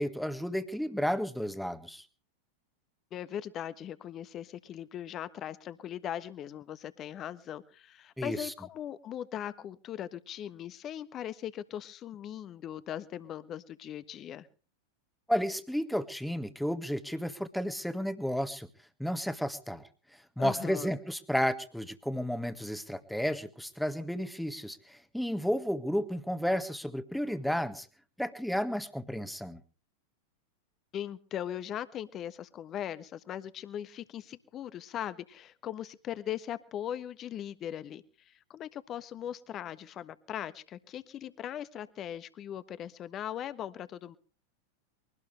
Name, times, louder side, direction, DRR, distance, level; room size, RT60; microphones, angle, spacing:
voice 1, 0.0-2.0 8.2-8.5 15.3-18.7 19.0-19.8 20.4-27.9 28.2-29.6, equal, ahead, 9 dB, 1.7 m, -32 dB
voice 2, 3.1-14.5 20.4-20.9 30.9-44.2, left 10 dB, 30° left, 14 dB, 1.3 m, -39 dB
23.0 x 18.0 x 3.3 m, 0.39 s
figure-of-eight pair, 90°, 0 cm